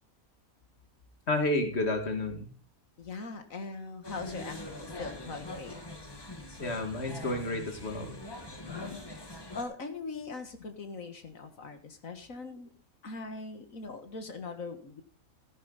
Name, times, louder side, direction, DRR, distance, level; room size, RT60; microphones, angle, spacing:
voice 1, 1.3-2.5 6.6-8.2, left 2 dB, 45° left, 6 dB, 2.4 m, -31 dB
voice 2, 3.0-5.8 8.7-9.0 9.5-12.7 13.0-15.0, left 4 dB, 65° left, 7 dB, 2.0 m, -41 dB
sound 1, 4.0-9.6, left 1 dB, 15° left, 1.6 m, -43 dB
14.5 x 10.5 x 4.1 m, 0.36 s
omnidirectional pair, 1.5 m